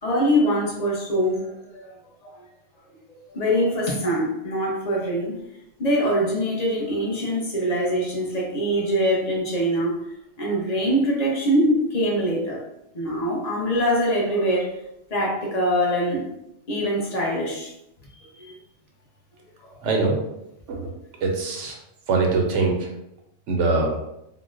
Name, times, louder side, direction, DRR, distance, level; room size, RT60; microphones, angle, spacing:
voice 1, 0.0-1.9 2.2-2.4 3.3-5.3 5.8-9.9 10.4-12.6 12.9-14.7 15.1-16.2 16.7-17.7 18.2-18.6 19.6-19.8 21.2-21.4, equal, 35° left, -3 dB, 0.8 m, -23 dB
voice 2, 19.8-20.2 20.7-20.9 21.2-21.8 22.1-22.8 23.5-23.9, right 3 dB, 80° right, 1 dB, 1.0 m, -22 dB
3.8 x 2.1 x 2.5 m, 0.84 s
omnidirectional pair, 1.3 m